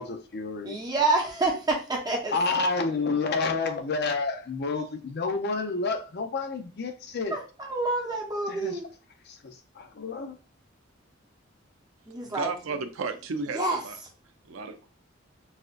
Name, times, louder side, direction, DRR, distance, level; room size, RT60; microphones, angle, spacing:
voice 1, 0.0-0.8 2.3-7.4 8.5-8.8 9.3-10.4, left 4 dB, 55° left, 0.5 m, -29 dB
voice 2, 0.6-2.4 7.3-8.9 12.1-12.5 13.5-13.8, right 2 dB, 20° right, 0.9 m, -27 dB
voice 3, 12.2-14.0 14.5-14.8, right 4 dB, 80° right, 0.5 m, -33 dB
4.1 x 2.5 x 2.5 m
head